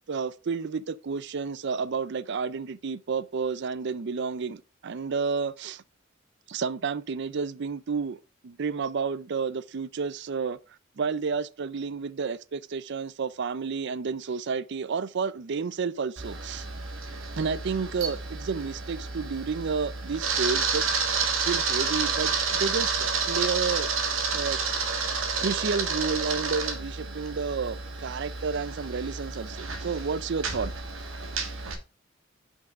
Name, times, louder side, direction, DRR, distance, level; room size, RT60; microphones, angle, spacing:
voice 1, 0.1-5.8 6.5-10.6 11.0-16.6 17.4-20.9 21.5-23.9 24.3-24.6 25.4-30.7 31.4-31.5, right 5 dB, 60° right, 0.5 m, -31 dB
Camera, 16.2-31.7, right 5 dB, 85° right, 1.5 m, -30 dB
5.9 x 5.4 x 4.9 m
head